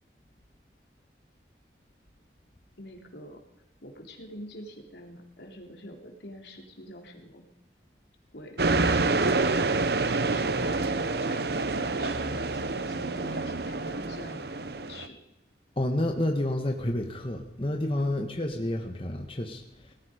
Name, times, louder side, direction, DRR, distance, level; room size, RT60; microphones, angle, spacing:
voice 1, 2.8-3.4 3.8-7.4 8.3-9.7 10.0-15.2 18.0-18.3, left 1 dB, 70° left, 2 dB, 3.1 m, -46 dB
sound 1, 8.6-15.1, right 3 dB, 65° right, 0.9 m, -27 dB
voice 2, 15.8-19.9, left 1 dB, 30° left, 3 dB, 1.4 m, -29 dB
19.0 x 14.5 x 5.1 m, 0.98 s
head